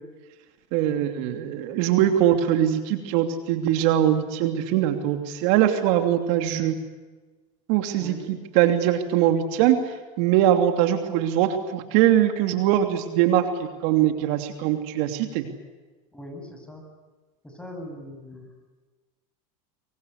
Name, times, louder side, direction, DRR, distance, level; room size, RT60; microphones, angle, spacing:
voice 1, 0.7-6.7 7.7-13.4 13.8-15.5, right 11 dB, 65° right, 7 dB, 2.9 m, -22 dB
voice 2, 8.0-8.3 16.1-16.8 17.4-18.5, left 1 dB, 5° left, 3 dB, 7.9 m, -40 dB
24.0 x 24.0 x 8.4 m, 1.3 s
supercardioid pair, 120°, 18 cm